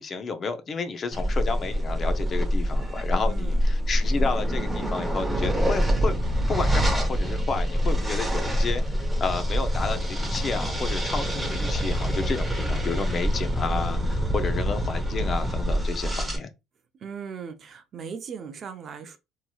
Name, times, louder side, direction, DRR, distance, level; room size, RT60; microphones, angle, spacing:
voice 1, 0.0-6.2 6.5-16.5, left 4 dB, 35° left, 0.5 m, -31 dB
sound 1, 1.1-16.4, equal, 10° right, 0.8 m, -25 dB
voice 2, 3.3-3.6 17.0-19.2, right 6 dB, 45° right, 0.5 m, -38 dB
2.9 x 2.8 x 2.2 m
cardioid pair, 120°, 0 cm